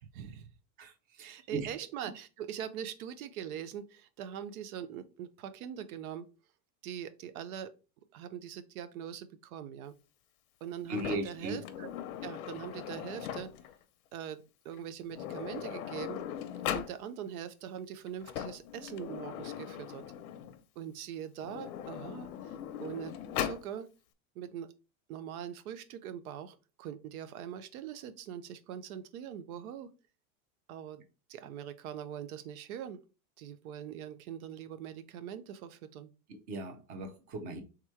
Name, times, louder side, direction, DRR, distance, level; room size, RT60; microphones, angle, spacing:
voice 1, 0.1-0.5 1.2-6.3 6.8-7.7 8.1-9.9 10.6-11.9 12.2-13.5 14.1-16.2 16.7-20.0 20.8-23.1 23.4-23.9 24.4-24.7 25.1-29.9 30.7-31.0 31.3-33.0 33.4-36.1, right 9 dB, 85° right, 0.7 m, -42 dB
voice 2, 1.2-1.7 10.9-11.6 36.3-37.6, right 1 dB, 20° right, 0.5 m, -37 dB
Sliding door, 10.9-13.8 14.7-14.8 15.1-17.0 18.1-20.6 21.4-23.7, left 10 dB, 85° left, 0.7 m, -39 dB
3.6 x 3.0 x 4.4 m
supercardioid pair, 170°, 42 cm